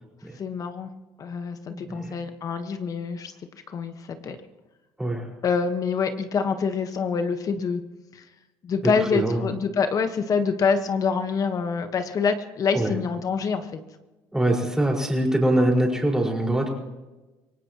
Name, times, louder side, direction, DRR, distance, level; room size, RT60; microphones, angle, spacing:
voice 1, 0.3-0.9 1.2-3.3 3.7-4.4 5.4-7.8 8.1-8.2 8.6-13.8, left 5 dB, 45° left, 8 dB, 1.3 m, -26 dB
voice 2, 1.7-2.1 5.0-5.3 9.1-9.4 12.7-12.9 14.3-16.7, right 1 dB, 5° right, 0 dB, 4.9 m, -23 dB
26.0 x 18.0 x 3.0 m, 1.1 s
supercardioid pair, 90°, 9 cm